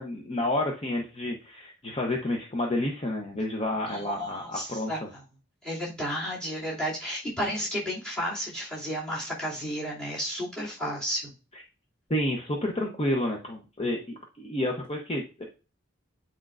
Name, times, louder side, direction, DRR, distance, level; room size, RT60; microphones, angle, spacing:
voice 1, 0.0-5.1 11.5-11.6 12.1-15.4, left 1 dB, 30° left, 1 dB, 0.8 m, -30 dB
voice 2, 3.9-5.0 5.6-11.3, equal, 5° left, -5 dB, 2.6 m, -32 dB
8.6 x 4.4 x 2.5 m, 0.33 s
head